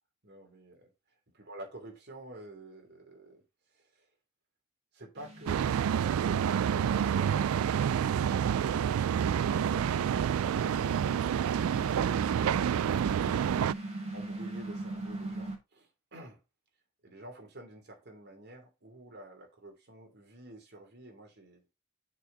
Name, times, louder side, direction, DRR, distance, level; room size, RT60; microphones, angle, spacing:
voice 1, 0.2-0.9 1.3-3.4 3.7-4.1 4.9-8.8 14.1-16.4 17.0-21.6, right 2 dB, 50° right, 2.9 m, -49 dB
sound 1, 5.2-15.6, right 1 dB, 30° right, 2.7 m, -42 dB
sound 2, 5.5-13.7, right 8 dB, 85° right, 0.3 m, -28 dB
6.8 x 4.8 x 5.1 m
head